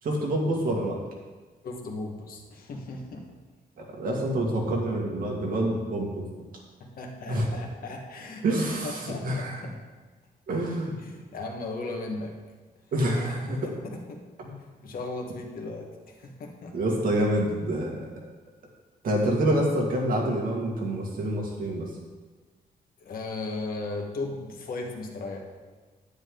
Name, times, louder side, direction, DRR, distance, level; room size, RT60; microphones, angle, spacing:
voice 1, 0.0-1.0 3.8-6.3 7.3-7.5 8.4-9.6 10.5-11.0 12.9-13.7 14.4-14.5 16.7-18.1 19.0-21.9, right 1 dB, 60° right, -2 dB, 2.3 m, -27 dB
voice 2, 1.6-3.3 6.8-8.4 8.8-9.7 11.0-12.3 13.5-14.2 14.8-16.8 23.0-25.5, left 2 dB, 65° left, 1 dB, 1.7 m, -36 dB
9.9 x 9.8 x 3.9 m, 1.3 s
wide cardioid pair, 155°, 17 cm